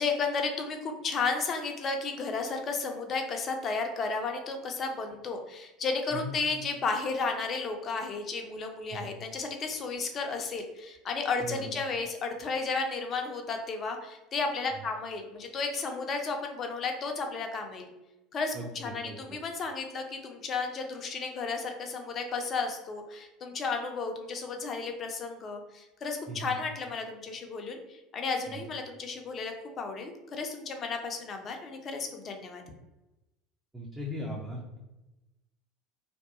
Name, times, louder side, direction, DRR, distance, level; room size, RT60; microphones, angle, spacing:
voice 1, 0.0-17.9 18.3-32.6, left 4 dB, 40° left, 4 dB, 0.5 m, -33 dB
voice 2, 33.7-34.8, equal, 10° right, -3 dB, 0.5 m, -38 dB
2.7 x 2.2 x 2.4 m, 1.0 s
figure-of-eight pair, 70°, 0 cm